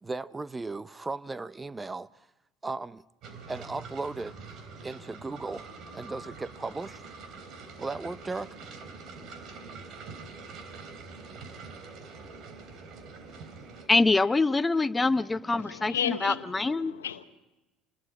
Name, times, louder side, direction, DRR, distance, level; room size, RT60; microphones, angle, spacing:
voice 1, 0.0-2.1 2.6-3.0 3.5-4.4 4.8-5.7 5.9-7.0 7.8-8.5, right 3 dB, 20° right, 0.7 m, -36 dB
sound 1, 3.2-13.9, right 4 dB, 55° right, 3.5 m, -45 dB
voice 2, 13.9-16.9, left 3 dB, 20° left, 0.8 m, -25 dB
voice 3, 15.6-17.2, left 9 dB, 90° left, 1.1 m, -33 dB
28.0 x 20.5 x 4.8 m
hypercardioid pair, 65°, 0 cm